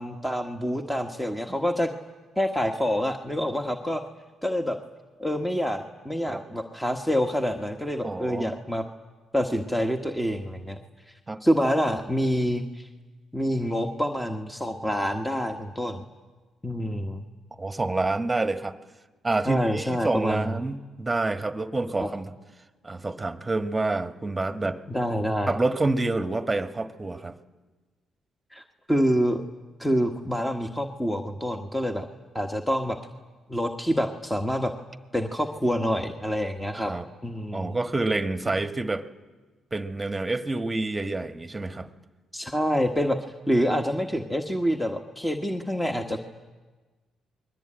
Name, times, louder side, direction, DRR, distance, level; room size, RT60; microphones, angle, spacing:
voice 1, 0.0-1.9 2.4-4.0 4.4-4.8 5.2-8.8 9.3-10.8 11.4-12.9 13.3-16.0 16.6-17.2 19.4-20.6 22.0-22.1 24.9-25.5 28.5-28.6 28.9-29.4 29.8-32.0 32.3-33.0 33.5-34.7 35.1-36.9 37.2-37.8 42.3-43.2 43.5-46.3, equal, 5° left, 4 dB, 1.5 m, -27 dB
voice 2, 8.0-8.5 11.3-11.4 17.6-18.7 19.2-22.3 22.8-24.8 25.5-27.4 36.7-37.1 37.5-39.0 39.7-41.9, right 2 dB, 20° right, 9 dB, 1.4 m, -28 dB
29.5 x 21.5 x 8.9 m, 1.3 s
cardioid pair, 90°, 0 cm